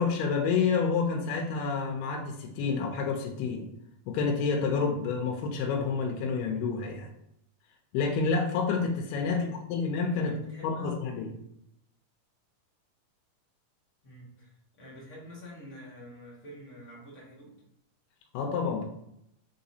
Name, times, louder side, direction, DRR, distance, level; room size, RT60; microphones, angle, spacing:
voice 1, 0.0-3.7 4.1-7.1 7.9-10.4 10.6-11.3 18.3-18.8, left 5 dB, 85° left, 1 dB, 2.1 m, -29 dB
voice 2, 9.3-9.6 10.2-11.3 14.0-17.6, left 1 dB, 45° left, -6 dB, 1.0 m, -47 dB
4.1 x 4.0 x 2.7 m, 0.76 s
omnidirectional pair, 3.8 m